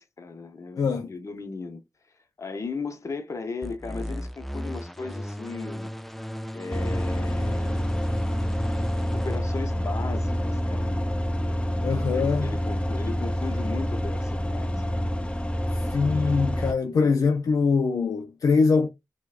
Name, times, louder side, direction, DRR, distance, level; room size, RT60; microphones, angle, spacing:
voice 1, 0.0-1.8 2.4-5.9 6.5-8.0 9.1-11.2 12.1-14.9 16.0-16.2 16.8-17.2, left 4 dB, 55° left, 0.8 m, -36 dB
voice 2, 0.8-1.1 11.8-12.5 15.7-18.9, left 4 dB, 80° left, 0.4 m, -23 dB
sound 1, 3.6-9.4, equal, 5° left, 0.4 m, -36 dB
sound 2, 6.7-16.7, equal, 20° left, 0.8 m, -27 dB
4.5 x 2.2 x 2.4 m
cardioid pair, 60°, 6 cm